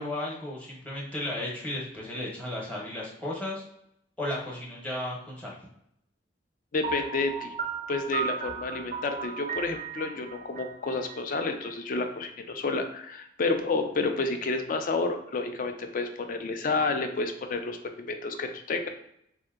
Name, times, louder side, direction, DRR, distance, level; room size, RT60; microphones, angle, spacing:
voice 1, 0.0-3.6 4.2-5.5, left 1 dB, 5° left, -5 dB, 0.8 m, -34 dB
voice 2, 6.7-7.5 7.9-17.8 18.1-18.9, left 3 dB, 45° left, 6 dB, 0.4 m, -30 dB
Piano, 6.8-11.7, right 5 dB, 35° right, 0.4 m, -35 dB
3.3 x 2.8 x 2.4 m, 0.74 s
head